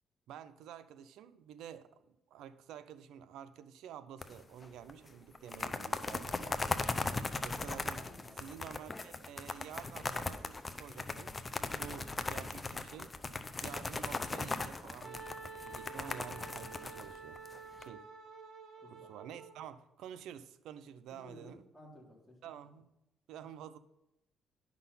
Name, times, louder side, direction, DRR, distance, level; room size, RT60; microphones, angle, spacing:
voice 1, 0.3-6.8 7.4-8.0 8.4-11.3 11.8-13.1 13.6-17.4 17.8-18.1 18.9-21.6 22.4-22.9 23.3-23.8, right 9 dB, 85° right, 0.6 m, -50 dB
sound 1, 4.2-4.6 4.9-5.0 5.3-17.8, left 3 dB, 25° left, 0.7 m, -38 dB
voice 2, 7.9-8.5 18.8-19.1 21.2-22.5, left 1 dB, ahead, 3.5 m, -55 dB
Wind instrument woodwind instrument, 15.0-19.7, right 4 dB, 65° right, 1.7 m, -49 dB
10.5 x 6.1 x 5.6 m
cardioid pair, 90°, 0 cm